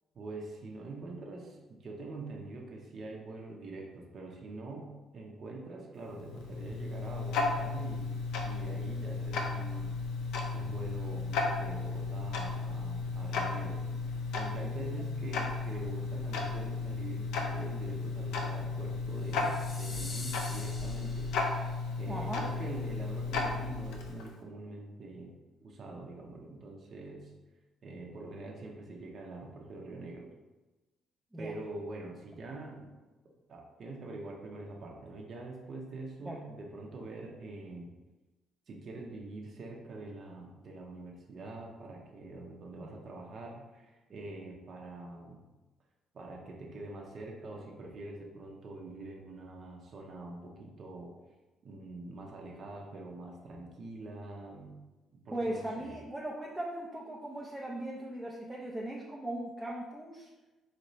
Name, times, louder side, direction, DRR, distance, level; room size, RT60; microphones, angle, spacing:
voice 1, 0.1-9.9 10.5-13.8 14.1-21.3 22.0-27.3 27.8-30.3 31.4-32.9 33.5-37.9 38.7-45.4 46.1-51.1 51.6-54.8 55.1-56.0, right 2 dB, 50° right, -1 dB, 0.7 m, -44 dB
Tick-tock, 6.0-24.4, left 3 dB, 85° left, 0.5 m, -34 dB
sound 1, 19.3-21.7, left 2 dB, 35° left, 0.9 m, -45 dB
voice 2, 22.1-22.5 31.3-31.5 36.2-36.4 42.8-42.9 55.3-60.3, right 1 dB, 5° right, -3 dB, 0.5 m, -38 dB
4.2 x 2.7 x 3.1 m, 1.1 s
cardioid pair, 95°, 0 cm